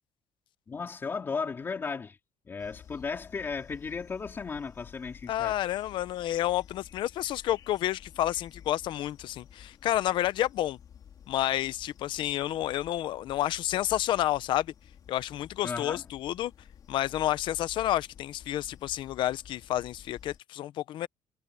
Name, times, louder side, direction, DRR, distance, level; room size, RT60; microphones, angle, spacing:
voice 1, 0.7-2.2 2.5-5.6 15.6-16.1, left 5 dB, 20° left, 3.5 m, -35 dB
sound 1, 2.6-20.4, left 8 dB, 40° left, 3.4 m, -52 dB
voice 2, 5.3-10.8 11.3-14.7 15.1-16.5 16.9-21.1, left 13 dB, 55° left, 0.8 m, -30 dB
cardioid pair, 175°, 10 cm